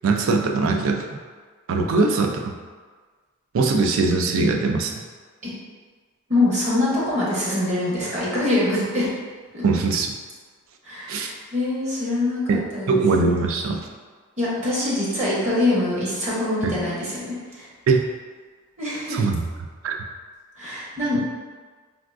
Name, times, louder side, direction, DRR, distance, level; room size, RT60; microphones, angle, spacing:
voice 1, 0.0-1.0 1.7-2.6 3.5-4.9 9.6-10.1 11.1-11.3 12.5-12.6 12.9-13.8 16.6-16.7 17.9-18.0 19.1-19.4 19.8-19.9, right 3 dB, 75° right, 3 dB, 0.4 m, -21 dB
voice 2, 6.3-9.1 9.5-9.6 10.8-13.0 14.4-17.7 18.8-19.2 20.6-21.3, left 2 dB, 35° right, -8 dB, 0.9 m, -24 dB
3.6 x 2.4 x 2.4 m, 1.5 s
head